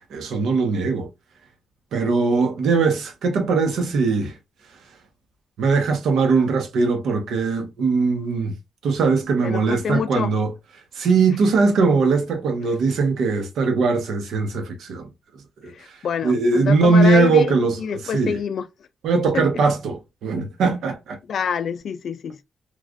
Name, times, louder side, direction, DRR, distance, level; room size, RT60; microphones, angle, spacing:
voice 1, 0.1-1.1 1.9-4.3 5.6-8.5 8.8-10.5 11.0-15.1 15.6-15.7 16.2-17.8 18.1-18.4 19.0-21.2, right 4 dB, 80° right, 0.9 m, -20 dB
voice 2, 9.4-10.3 15.7-18.7 19.3-19.5 21.3-22.4, left 7 dB, 60° left, 0.3 m, -27 dB
3.1 x 2.4 x 2.4 m
cardioid pair, 120°, 0 cm